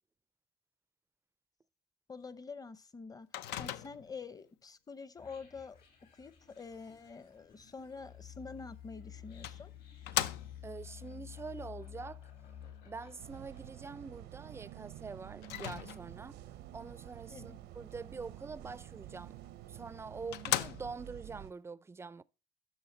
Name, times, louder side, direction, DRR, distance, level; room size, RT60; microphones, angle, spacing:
voice 1, 2.1-3.3 3.6-5.8 6.1-9.7 17.3-17.6, left 4 dB, 20° left, 0.7 m, -47 dB
Microwave oven, 3.3-4.2 8.6-8.7 9.4-10.8 15.4-16.3 19.4-19.5 20.0-20.1 20.3-21.2, left 12 dB, 90° left, 0.6 m, -37 dB
sound 1, 5.2-14.4, left 10 dB, 65° left, 4.1 m, -51 dB
voice 2, 10.6-12.3 12.8-19.4 19.7-22.2, right 4 dB, 15° right, 0.4 m, -45 dB
sound 2, 13.2-21.5, right 14 dB, 85° right, 0.7 m, -50 dB
11.0 x 6.3 x 4.1 m
cardioid pair, 110°, 17 cm